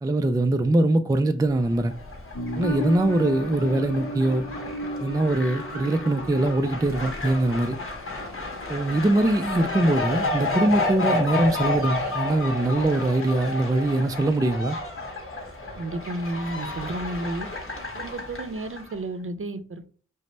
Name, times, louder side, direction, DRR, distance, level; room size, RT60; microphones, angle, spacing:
voice 1, 0.0-1.9 2.6-4.5 5.0-7.8 8.7-14.8, right 1 dB, 15° right, 0.4 m, -22 dB
Fowl, 1.6-18.9, left 2 dB, 45° left, 1.2 m, -31 dB
sound 1, 2.3-7.9 8.1-8.2, equal, 65° left, 0.8 m, -34 dB
voice 2, 15.8-17.5 17.9-19.8, right 2 dB, 45° right, 0.7 m, -32 dB
5.0 x 2.1 x 4.1 m
cardioid pair, 40°, 29 cm